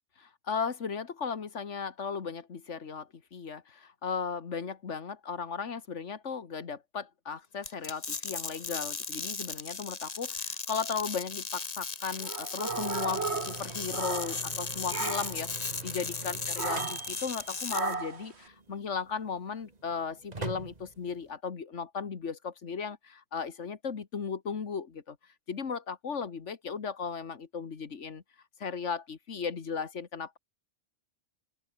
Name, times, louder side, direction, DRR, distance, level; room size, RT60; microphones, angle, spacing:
voice 1, 0.2-25.2 25.5-28.2 28.6-30.4, left 6 dB, 85° left, 1.9 m, -36 dB
sound 1, 7.6-17.9, left 4 dB, 35° left, 1.3 m, -37 dB
sound 2, 12.2-14.6 14.9-15.4 16.6-17.1 17.7-18.3, right 4 dB, 65° right, 2.4 m, -35 dB
sound 3, 12.7-21.3, right 3 dB, 35° right, 2.0 m, -45 dB
open air
omnidirectional pair, 1.2 m